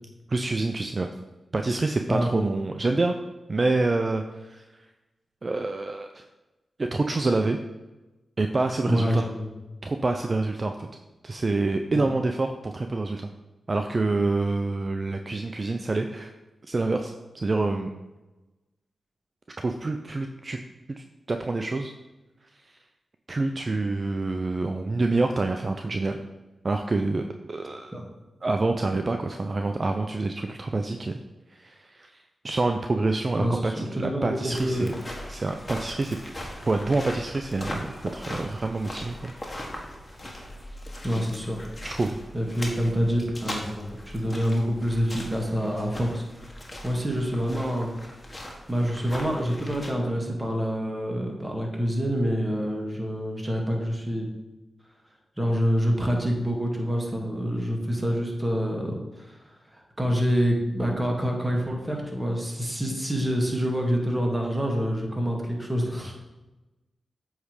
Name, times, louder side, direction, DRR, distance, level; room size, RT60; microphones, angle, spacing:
voice 1, 0.3-1.1 1.5-3.1 3.5-4.9 5.4-6.3 6.8-7.6 8.4-9.3 9.8-10.9 11.2-13.3 13.7-16.3 16.7-17.9 19.6-20.6 20.9-21.9 22.6-22.8 23.3-26.2 26.6-28.0 28.4-31.2 31.5-34.9 35.3-36.3 36.6-39.3 41.8-42.2, right 3 dB, 45° right, 5 dB, 0.4 m, -27 dB
voice 2, 2.1-2.5 8.9-9.5 11.9-12.1 27.9-28.0 33.4-34.9 41.0-41.6 42.3-47.9 48.3-48.4 48.7-54.3 55.4-59.4 59.7-66.2, equal, 15° right, 0 dB, 1.8 m, -27 dB
sound 1, 34.5-49.9, left 1 dB, 35° left, 1.6 m, -39 dB
7.9 x 3.2 x 4.9 m, 1.1 s
supercardioid pair, 40°, 0 cm